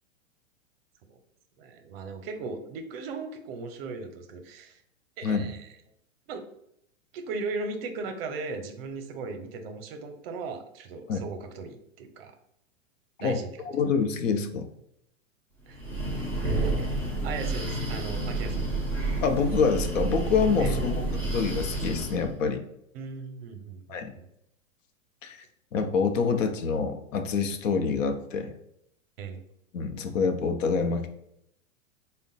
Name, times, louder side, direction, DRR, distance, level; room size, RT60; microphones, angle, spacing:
voice 1, 1.6-4.8 5.2-5.7 6.3-6.5 7.1-12.4 13.2-13.5 15.7-15.8 16.6-16.7 17.2-18.8 20.6-20.8 22.9-24.3 29.2-29.4, right 4 dB, 50° right, 7 dB, 0.6 m, -37 dB
voice 2, 13.6-14.6 19.2-22.7 23.9-24.1 25.2-25.4 25.7-28.5 29.7-31.1, left 5 dB, 75° left, 7 dB, 0.7 m, -26 dB
Breathing, 15.7-22.3, right 2 dB, 5° left, 0.3 m, -29 dB
3.5 x 2.2 x 3.9 m, 0.76 s
hypercardioid pair, 125°, 39 cm